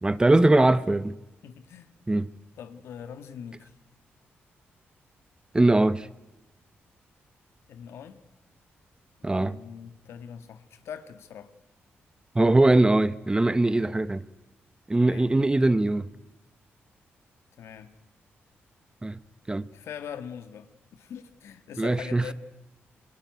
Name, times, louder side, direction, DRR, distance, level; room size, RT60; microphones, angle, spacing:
voice 1, 0.0-1.2 2.1-2.3 5.5-6.1 9.2-9.6 12.3-14.2 14.9-16.1 19.0-19.2 19.5-19.6 21.8-22.2, right 2 dB, 20° right, 16 dB, 0.9 m, -21 dB
voice 2, 1.4-1.9 2.5-3.7 7.7-8.2 9.4-11.5 15.1-15.3 17.6-17.9 19.7-22.3, left 8 dB, 85° left, 10 dB, 1.6 m, -42 dB
26.0 x 20.0 x 9.4 m, 1.1 s
cardioid pair, 70°, 4 cm